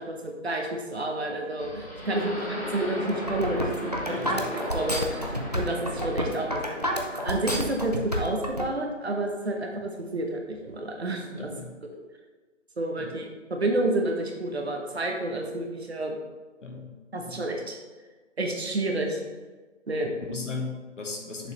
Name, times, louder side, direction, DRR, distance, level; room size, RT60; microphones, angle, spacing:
voice 1, 0.0-4.2 4.7-6.7 7.2-11.5 11.9-12.0 12.8-16.2 17.1-17.8 18.4-19.2 19.9-20.1, right 1 dB, 55° right, 2 dB, 1.1 m, -30 dB
sound 1, 1.6-7.9, left 1 dB, 30° left, 1.4 m, -36 dB
voice 2, 2.0-2.3 4.1-4.5 6.3-6.4 11.4-11.8 13.0-13.2 16.6-17.4 20.3-21.5, left 4 dB, 75° left, 1 dB, 1.4 m, -37 dB
sound 2, 3.1-8.6, equal, 35° right, 0.4 m, -29 dB
6.6 x 5.1 x 3.0 m, 1.3 s
figure-of-eight pair, 165°, 38 cm